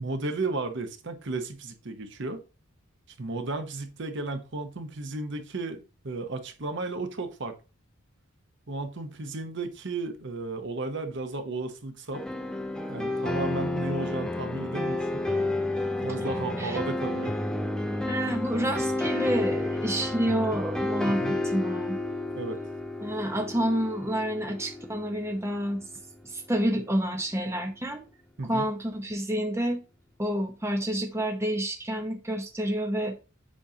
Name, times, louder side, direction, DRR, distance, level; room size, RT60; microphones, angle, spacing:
voice 1, 0.0-2.4 3.2-7.5 8.7-12.2 12.9-15.3 16.0-17.4 21.1-21.4 22.3-22.7 28.4-28.7, right 3 dB, 55° right, 7 dB, 0.9 m, -34 dB
sound 1, 12.1-26.0, left 2 dB, 5° left, 0.4 m, -31 dB
voice 2, 18.1-22.0 23.0-25.9 26.2-28.0 28.5-29.8 30.2-33.1, right 1 dB, 15° right, 3 dB, 0.8 m, -29 dB
7.4 x 5.3 x 2.8 m, 0.31 s
head